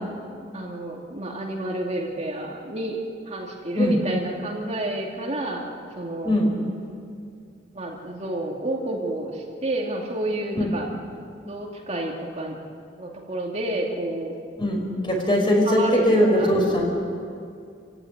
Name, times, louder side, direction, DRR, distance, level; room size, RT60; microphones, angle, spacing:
voice 1, 0.5-3.0 3.3-5.6 6.0-6.3 7.7-10.9 11.4-12.6 13.0-14.4 15.6-16.0 16.3-16.5, right 1 dB, 35° right, -1 dB, 2.5 m, -29 dB
voice 2, 14.6-16.8, equal, 25° left, 0 dB, 5.4 m, -20 dB
27.5 x 16.0 x 9.6 m, 2.4 s
head